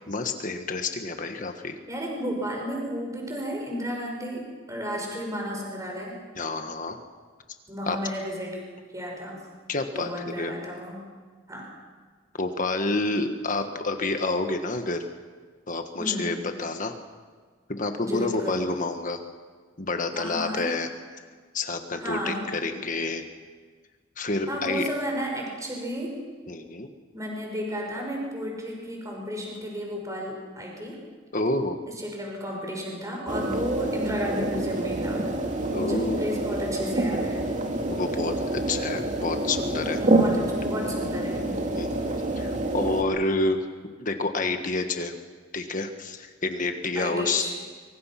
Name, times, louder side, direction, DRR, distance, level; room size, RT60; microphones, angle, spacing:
voice 1, 0.1-1.8 6.4-7.0 7.9-8.0 9.7-10.1 10.4-10.5 12.4-15.1 15.7-16.9 17.7-19.2 19.8-20.9 21.5-23.2 24.2-24.9 26.5-26.9 31.3-31.8 33.5-33.6 35.7-36.2 37.9-40.0 41.7-43.6 44.0-45.1 45.5-47.5, left 3 dB, 45° left, 6 dB, 1.5 m, -28 dB
voice 2, 1.9-6.2 7.7-8.6 8.9-9.5 10.0-11.0 11.5-11.7 16.0-16.4 18.0-18.7 20.1-20.7 21.9-22.5 24.5-26.2 27.1-31.0 31.9-35.3 35.7-37.5 40.0-41.6 46.9-47.6, equal, 15° right, 0 dB, 5.6 m, -33 dB
sound 1, 33.3-43.0, right 2 dB, 40° right, 2.5 m, -27 dB
24.5 x 24.0 x 5.9 m, 1.5 s
head